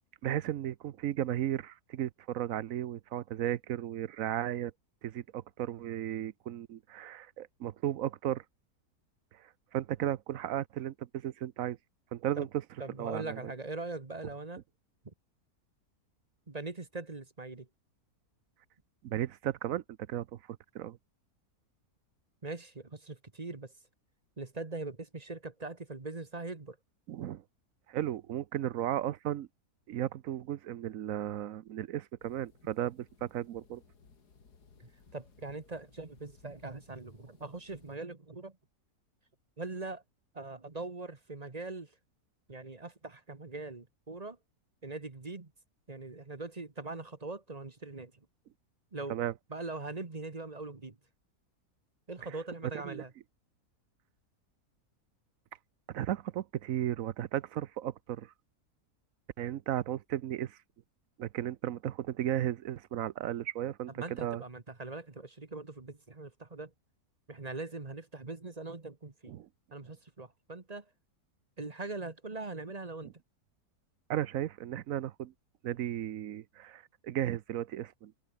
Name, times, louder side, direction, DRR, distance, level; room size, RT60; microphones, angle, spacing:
voice 1, 0.2-4.7 5.0-8.4 9.7-11.8 12.1-12.5 13.0-13.5 19.0-19.8 20.1-20.4 20.7-21.0 27.1-27.4 27.9-29.5 29.9-33.8 49.1-49.3 52.8-53.0 55.9-58.3 59.4-60.6 61.2-64.4 69.3-69.5 74.1-75.3 75.6-78.1, right 12 dB, 65° right, 1.1 m, -35 dB
voice 2, 12.8-14.6 15.0-15.1 16.5-17.7 22.4-23.7 24.4-26.8 34.8-38.6 39.6-40.0 40.3-41.9 42.5-44.4 44.8-45.5 45.9-48.1 48.9-49.2 49.5-51.0 52.1-53.1 63.9-66.7 67.3-69.4 69.7-70.9 71.6-73.1, right 3 dB, 25° right, 1.5 m, -41 dB
sound 1, 32.2-38.0, left 5 dB, 90° left, 3.1 m, -62 dB
omnidirectional pair, 1.7 m